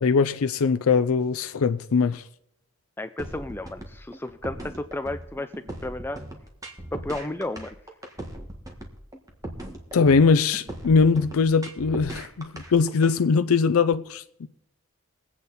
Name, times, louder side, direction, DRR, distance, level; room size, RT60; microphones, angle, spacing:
voice 1, 0.0-2.3 9.9-14.5, left 5 dB, 80° left, 0.5 m, -21 dB
voice 2, 3.0-5.5 5.8-6.2 6.9-7.8, left 2 dB, 10° left, 0.4 m, -33 dB
sound 1, 3.2-13.1, right 1 dB, 15° right, 1.6 m, -38 dB
21.5 x 8.5 x 4.2 m
head